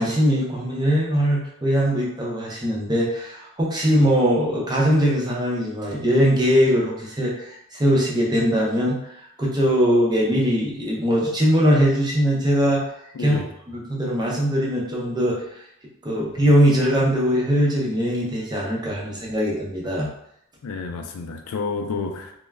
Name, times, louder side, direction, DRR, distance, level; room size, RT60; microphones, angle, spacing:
voice 1, 0.0-9.1 9.4-12.9 13.2-13.4 13.7-15.4 16.0-20.1, equal, 20° right, -4 dB, 0.5 m, -21 dB
voice 2, 13.1-13.5 20.6-22.4, left 4 dB, 80° left, 5 dB, 0.4 m, -30 dB
2.3 x 2.1 x 3.2 m, 0.75 s
head